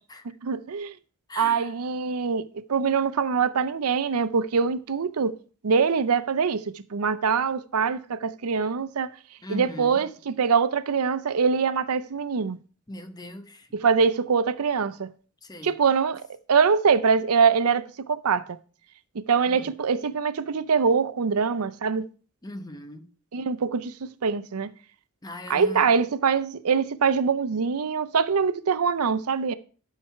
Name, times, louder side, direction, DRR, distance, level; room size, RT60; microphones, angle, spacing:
voice 1, 0.2-0.9 1.4-5.3 5.6-6.6 6.9-9.1 9.5-12.6 13.7-15.1 15.6-16.2 16.5-18.6 19.3-22.0 23.3-24.7 25.5-29.5, right 5 dB, 85° right, 0.6 m, -23 dB
voice 2, 1.3-1.7 9.4-10.0 12.9-13.7 15.4-15.7 19.5-19.7 22.4-23.1 25.2-25.9, left 1 dB, 20° left, 0.9 m, -39 dB
12.0 x 4.7 x 5.7 m
head